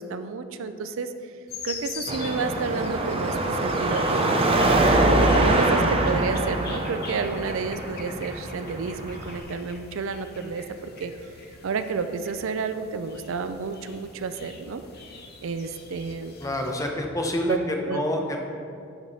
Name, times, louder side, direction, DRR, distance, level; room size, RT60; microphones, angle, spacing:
voice 1, 0.0-1.3 1.6-4.7 5.2-11.3 11.6-14.8 15.4-16.3 17.5-17.6 17.9-18.1, right 4 dB, 65° right, 10 dB, 0.4 m, -31 dB
sound 1, 1.5-16.9, left 5 dB, 50° left, 0.9 m, -43 dB
Car passing by / Traffic noise roadway noise / Engine, 2.1-9.4, right 2 dB, 25° right, 0.6 m, -24 dB
voice 2, 16.4-18.4, left 1 dB, 15° left, 2 dB, 0.8 m, -27 dB
11.0 x 4.9 x 4.1 m, 2.5 s
head